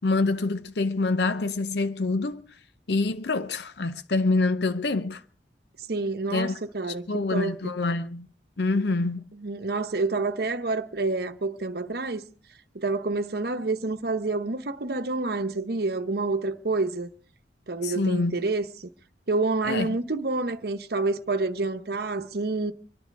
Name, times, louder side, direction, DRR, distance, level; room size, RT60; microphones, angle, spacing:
voice 1, 0.0-2.5 2.9-5.2 6.3-6.6 6.9-8.3 8.6-9.2 17.8-18.4 19.6-19.9, left 3 dB, 65° left, 0.6 m, -26 dB
voice 2, 5.9-7.7 9.3-12.2 12.7-17.1 17.7-18.9 19.3-22.7, right 3 dB, 60° right, 1.0 m, -28 dB
25.0 x 10.5 x 4.7 m
head